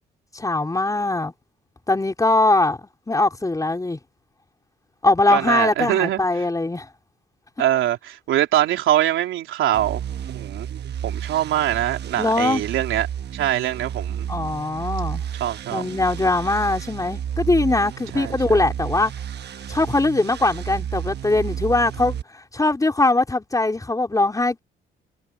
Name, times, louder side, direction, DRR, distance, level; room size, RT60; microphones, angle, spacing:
voice 1, 0.3-1.3 1.9-2.8 3.1-4.0 5.0-6.9 12.2-12.6 14.3-15.2 15.7-19.1 19.7-22.2 22.5-24.6, left 2 dB, 15° left, 4.3 m, -21 dB
voice 2, 5.3-6.4 7.6-10.0 10.3-13.1 13.3-14.3 15.4-15.8 18.1-18.7, right 12 dB, 85° right, 3.6 m, -23 dB
sound 1, 9.7-22.2, right 9 dB, 60° right, 1.3 m, -31 dB
cardioid pair, 90°, 20 cm